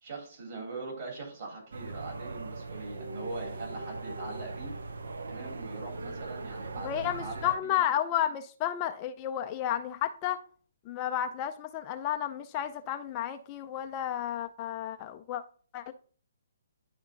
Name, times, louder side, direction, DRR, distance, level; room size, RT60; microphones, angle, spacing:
voice 1, 0.0-4.8 5.3-7.8, right 3 dB, 45° right, 3.3 m, -41 dB
sound 1, 1.7-7.6, right 3 dB, 70° right, 0.6 m, -40 dB
voice 2, 6.8-10.4 10.9-15.4 15.7-15.9, left 11 dB, 30° left, 0.4 m, -32 dB
9.6 x 3.6 x 3.8 m
figure-of-eight pair, 135°, 0 cm